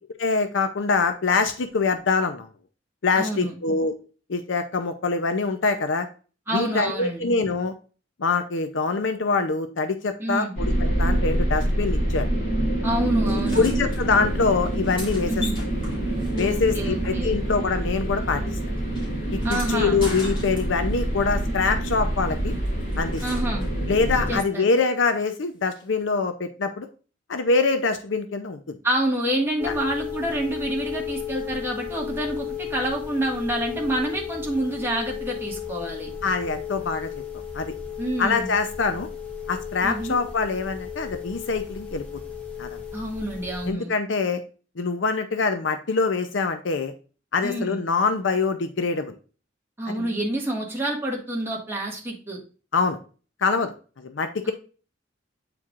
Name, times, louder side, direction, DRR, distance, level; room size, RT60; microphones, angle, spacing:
voice 1, 0.2-2.5 3.0-3.9 4.3-6.1 6.5-7.7 8.2-10.7 11.0-12.3 13.3-15.4 16.4-18.4 19.7-22.5 23.0-23.2 23.9-26.9 27.3-28.8 29.6-29.7 36.2-37.1 37.5-37.7 38.2-39.1 39.5-42.0 42.6-42.8 43.7-44.4 44.8-46.9 47.3-49.2 49.9-50.1 52.7-53.0 53.4-54.5, left 4 dB, 80° left, 8 dB, 0.6 m, -24 dB
voice 2, 3.2-3.5 6.5-7.3 10.2-10.5 12.8-13.7 15.3-15.5 16.3-17.4 19.4-20.0 23.2-23.6 24.3-24.7 28.8-36.1 38.0-38.5 39.8-40.2 42.9-43.9 47.4-47.8 49.8-52.4 54.4-54.5, right 1 dB, 15° right, -2 dB, 1.6 m, -28 dB
sound 1, 10.6-24.4, right 1 dB, 45° left, 3.0 m, -26 dB
sound 2, 13.3-14.0 14.6-17.6 17.9-21.0 22.5-23.8 25.7-25.8, left 2 dB, 25° left, 3.0 m, -40 dB
sound 3, 29.6-43.7, left 8 dB, 5° left, 0.9 m, -34 dB
8.6 x 4.6 x 2.4 m, 0.36 s
head